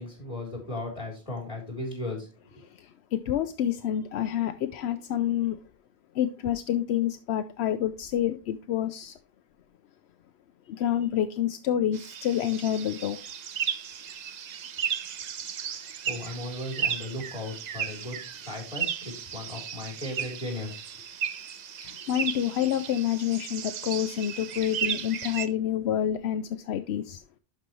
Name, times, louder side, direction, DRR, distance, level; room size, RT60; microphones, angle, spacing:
voice 1, 0.0-2.6 16.1-21.0, left 1 dB, 30° left, -1 dB, 3.7 m, -37 dB
voice 2, 2.8-5.6 6.1-9.1 10.7-13.2 21.8-27.2, left 10 dB, 80° left, 9 dB, 0.8 m, -28 dB
sound 1, 11.9-25.5, right 8 dB, 50° right, 0.6 m, -35 dB
11.5 x 5.4 x 3.1 m, 0.32 s
omnidirectional pair, 1.1 m